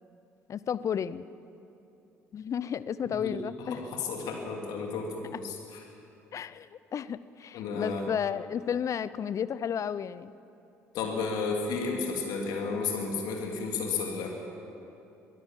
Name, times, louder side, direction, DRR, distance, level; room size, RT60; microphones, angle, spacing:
voice 1, 0.5-1.2 2.3-3.8 5.3-5.4 6.3-10.3, left 8 dB, 45° left, 17 dB, 0.7 m, -33 dB
voice 2, 3.7-5.5 7.5-8.1 10.9-14.3, left 4 dB, 60° left, 1 dB, 3.0 m, -32 dB
23.0 x 15.0 x 7.6 m, 2.8 s
figure-of-eight pair, 50°, 7 cm